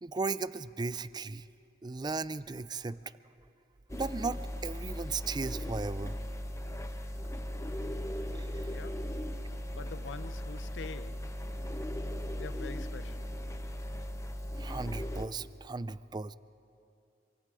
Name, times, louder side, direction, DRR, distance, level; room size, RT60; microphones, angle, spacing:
voice 1, 0.0-1.5 1.8-3.1 3.9-6.2 8.4-8.8 14.6-16.4, right 4 dB, 25° right, 0.4 m, -36 dB
sound 1, 3.9-15.3, equal, 15° left, 0.9 m, -38 dB
voice 2, 8.7-9.2 9.7-11.3 12.4-13.3, left 5 dB, 85° left, 0.6 m, -46 dB
27.0 x 24.0 x 4.9 m
head